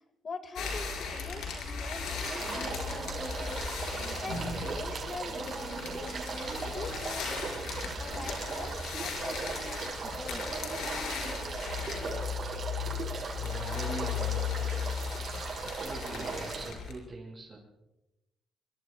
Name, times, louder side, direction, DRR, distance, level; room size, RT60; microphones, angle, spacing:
voice 1, 0.0-10.6 13.0-13.2, left 4 dB, 45° left, 9 dB, 1.9 m, -44 dB
sound 1, 0.5-16.9, left 5 dB, 85° left, 5.4 m, -37 dB
sound 2, 2.2-16.7, right 4 dB, 50° right, 5.9 m, -38 dB
voice 2, 13.3-14.5 15.6-17.6, right 2 dB, 25° right, -5 dB, 5.0 m, -43 dB
24.0 x 22.5 x 2.3 m, 0.95 s
cardioid pair, 90°, 0 cm